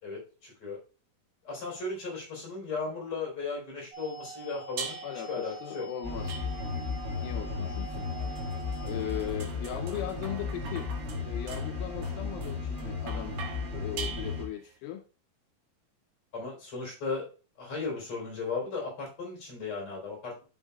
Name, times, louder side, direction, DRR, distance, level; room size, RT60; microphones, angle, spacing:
voice 1, 0.0-0.8 1.4-5.0 5.3-5.9 16.3-17.3 17.6-20.4, left 4 dB, 35° left, -2 dB, 4.1 m, -36 dB
sound 1, 3.9-9.2, right 4 dB, 10° right, 3.1 m, -45 dB
sound 2, 4.8-5.3 6.3-6.9 7.9-14.7, right 7 dB, 70° right, 2.2 m, -43 dB
voice 2, 5.0-6.4 7.2-8.1 8.3-8.4 8.8-10.9 11.2-13.4 13.7-15.0, left 11 dB, 80° left, 7 dB, 2.2 m, -38 dB
sound 3, 6.0-14.4, left 4 dB, 50° right, 0.8 m, -35 dB
12.0 x 5.5 x 2.3 m, 0.35 s
omnidirectional pair, 4.5 m